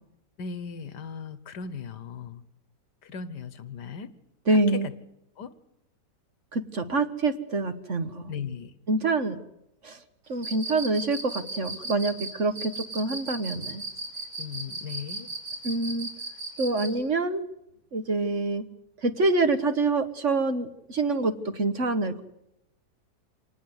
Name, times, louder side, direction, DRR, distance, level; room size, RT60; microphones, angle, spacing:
voice 1, 0.4-2.4 3.0-4.1 4.5-4.9 5.4-5.5 8.3-8.7 14.4-15.3, left 6 dB, 75° left, 15 dB, 1.8 m, -37 dB
voice 2, 4.5-4.9 6.5-8.2 8.9-9.4 9.8-10.0 10.3-13.8 15.6-16.1 16.6-17.4 17.9-18.6 19.0-22.2, right 3 dB, 45° right, 9 dB, 1.5 m, -26 dB
Cricket, 10.4-16.9, right 2 dB, 75° right, 6.3 m, -35 dB
25.5 x 19.0 x 8.1 m, 0.83 s
omnidirectional pair, 1.9 m